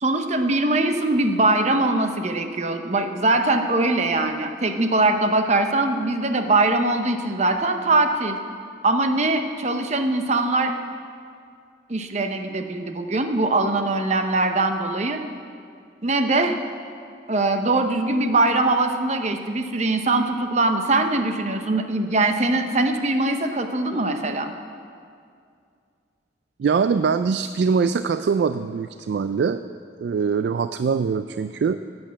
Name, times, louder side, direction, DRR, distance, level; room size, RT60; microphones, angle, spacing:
voice 1, 0.0-8.4 8.8-10.7 11.9-15.2 16.0-16.6 17.3-24.5, right 2 dB, 40° right, 6 dB, 0.8 m, -22 dB
voice 2, 26.6-29.6 30.0-31.8, right 5 dB, 65° right, 11 dB, 0.3 m, -22 dB
11.5 x 8.8 x 7.4 m, 2.3 s
head